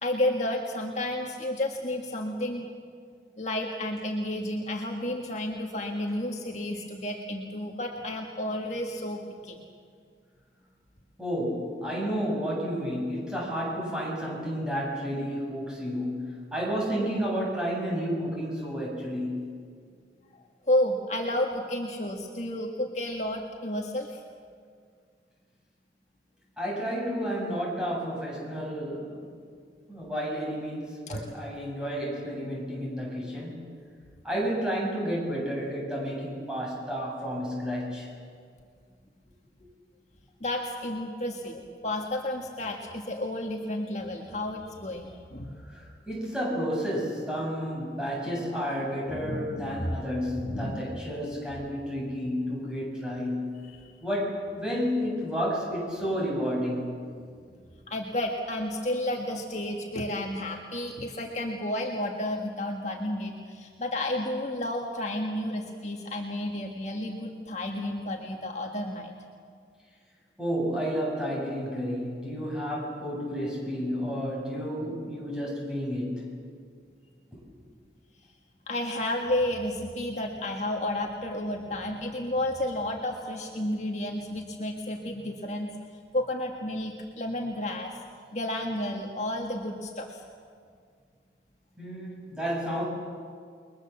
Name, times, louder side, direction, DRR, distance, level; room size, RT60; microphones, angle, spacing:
voice 1, 0.0-2.7 3.4-9.6 20.7-24.2 31.1-31.2 40.4-45.6 49.2-50.0 50.4-50.9 53.6-53.9 57.9-69.1 78.7-85.7 86.1-88.0 88.3-90.2, left 1 dB, 40° left, 1 dB, 1.7 m, -31 dB
voice 2, 11.2-19.5 26.6-29.3 29.9-33.7 34.2-38.1 45.6-53.6 54.0-57.1 70.4-76.3 77.3-77.4 91.8-92.8, equal, 5° right, -4 dB, 7.7 m, -31 dB
30.0 x 22.0 x 7.4 m, 2.1 s
head